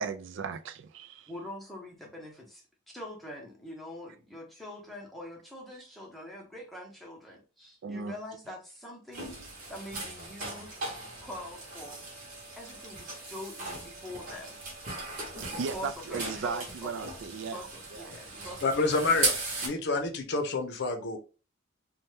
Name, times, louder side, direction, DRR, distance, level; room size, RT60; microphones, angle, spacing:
voice 1, 0.0-1.3 7.8-8.1 15.4-17.6 17.9-18.5, right 5 dB, 60° right, 0.3 m, -36 dB
voice 2, 1.3-2.6 2.9-9.3 9.7-10.7 11.2-12.0 12.6-14.5 15.5-16.9 17.5-19.0, left 1 dB, ahead, 0.8 m, -44 dB
sound 1, 9.1-19.7, right 3 dB, 40° right, 0.9 m, -37 dB
voice 3, 18.6-19.4 19.6-21.2, left 3 dB, 55° left, 0.6 m, -28 dB
2.7 x 2.2 x 3.2 m
head